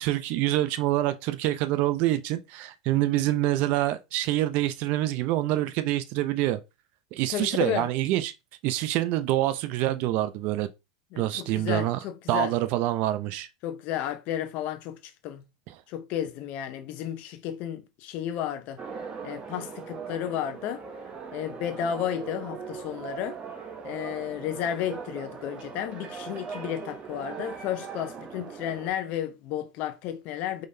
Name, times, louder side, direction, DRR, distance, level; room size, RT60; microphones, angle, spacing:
voice 1, 0.0-6.6 7.1-8.3 8.6-10.7 11.2-12.0 12.3-13.5 15.7-15.8, right 15 dB, 50° right, 0.6 m, -26 dB
voice 2, 7.3-7.9 11.1-12.5 13.6-15.4 15.9-18.8 19.2-20.8 21.3-23.4 23.8-30.7, left 10 dB, 50° left, 0.7 m, -32 dB
sound 1, 18.8-28.9, right 6 dB, 30° right, 1.1 m, -40 dB
5.1 x 3.8 x 2.7 m
hypercardioid pair, 110°, 3 cm